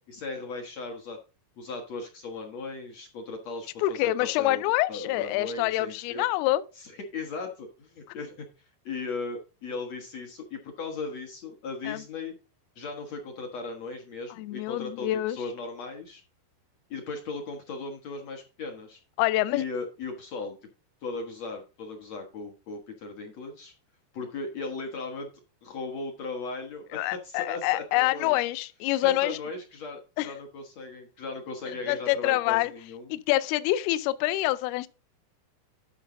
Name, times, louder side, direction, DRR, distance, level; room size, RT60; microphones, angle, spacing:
voice 1, 0.1-1.2 1.6-4.6 4.9-6.2 6.8-12.4 12.8-16.2 16.9-19.0 19.5-20.6 21.0-23.7 24.1-25.3 25.6-28.4 29.0-33.2, left 3 dB, 65° left, 1.7 m, -37 dB
voice 2, 3.8-6.6 11.9-12.0 14.4-15.4 19.2-19.6 26.9-29.4 30.2-30.3 31.7-32.7 33.1-34.9, left 16 dB, 80° left, 2.3 m, -26 dB
12.0 x 5.4 x 3.8 m
omnidirectional pair, 4.9 m